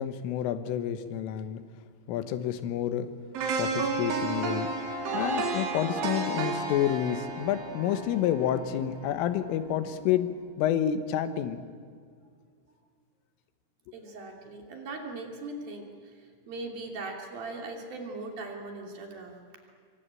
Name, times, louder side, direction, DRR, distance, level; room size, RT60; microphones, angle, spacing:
voice 1, 0.0-1.6 2.1-3.1 3.6-4.7 5.1-11.6, left 10 dB, 90° left, 11 dB, 3.9 m, -29 dB
sound 1, 3.3-9.4 9.8-9.9, right 3 dB, 75° right, 5.4 m, -32 dB
voice 2, 13.9-15.9 16.5-19.4, right 3 dB, 50° right, 2 dB, 4.3 m, -39 dB
26.0 x 24.0 x 9.0 m, 2.1 s
omnidirectional pair, 5.6 m